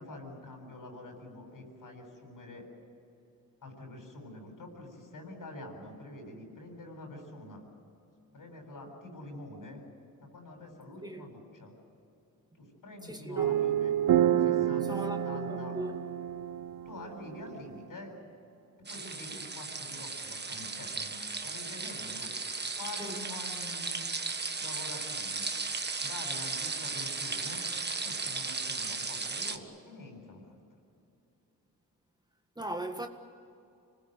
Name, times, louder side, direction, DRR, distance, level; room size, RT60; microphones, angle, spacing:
voice 1, 0.0-2.7 3.6-7.6 8.3-9.8 10.2-11.7 12.5-14.0 14.4-15.8 16.8-18.1 18.9-21.1 21.4-22.3 22.8-24.1 24.6-25.5 26.0-27.6 28.0-30.6, left 2 dB, 65° left, 7.9 m, -46 dB
voice 2, 13.0-13.6 14.9-16.0 19.3-19.4 23.0-23.2 32.6-33.1, right 1 dB, 10° right, 1.7 m, -38 dB
sound 1, 13.4-17.8, right 10 dB, 70° right, 0.8 m, -29 dB
sound 2, 18.9-29.6, right 4 dB, 30° right, 1.6 m, -36 dB
26.5 x 20.0 x 8.1 m
cardioid pair, 75°, 35 cm